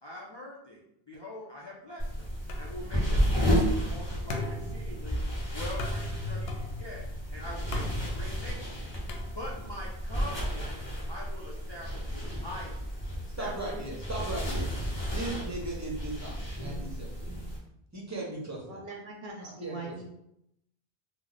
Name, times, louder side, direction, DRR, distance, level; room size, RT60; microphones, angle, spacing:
voice 1, 0.0-5.2 5.5-7.0 7.3-8.9 9.2-10.7 11.1-12.9 13.4-13.8, left 1 dB, 45° left, -3 dB, 0.3 m, -43 dB
sound 1, 2.0-17.6, equal, 25° left, 1.0 m, -32 dB
sound 2, 2.5-9.9, left 2 dB, 75° left, 0.8 m, -40 dB
voice 2, 13.4-14.7 15.1-17.3 17.9-18.8 19.4-19.9, right 2 dB, 20° right, -3 dB, 0.6 m, -37 dB
voice 3, 18.7-20.1, right 2 dB, 60° right, 1 dB, 0.7 m, -41 dB
3.1 x 2.0 x 3.8 m, 0.79 s
omnidirectional pair, 1.0 m